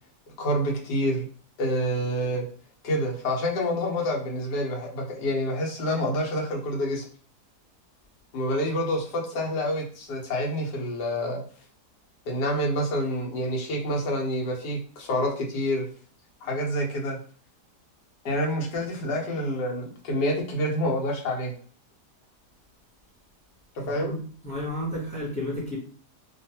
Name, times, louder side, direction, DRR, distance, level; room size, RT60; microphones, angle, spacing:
voice 1, 0.4-1.3 1.6-2.4 2.8-7.0 8.3-11.4 12.3-15.9 16.4-17.2 18.2-21.5 23.7-24.1, equal, 80° left, 1.4 m, -27 dB
voice 2, 23.8-25.8, left 1 dB, 10° left, 0.4 m, -32 dB
3.0 x 2.4 x 2.8 m
omnidirectional pair, 1.8 m